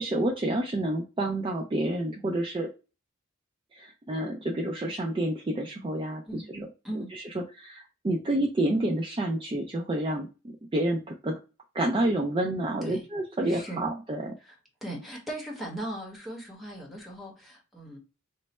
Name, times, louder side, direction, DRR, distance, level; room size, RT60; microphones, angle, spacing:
voice 1, 0.0-2.7 3.7-6.7 7.0-10.3 10.7-11.4 11.7-14.3, right 1 dB, 25° right, 0 dB, 0.4 m, -29 dB
voice 2, 13.4-13.8 14.4-14.6 14.8-18.0, right 1 dB, ahead, -2 dB, 1.1 m, -38 dB
3.1 x 2.1 x 4.1 m, 0.31 s
head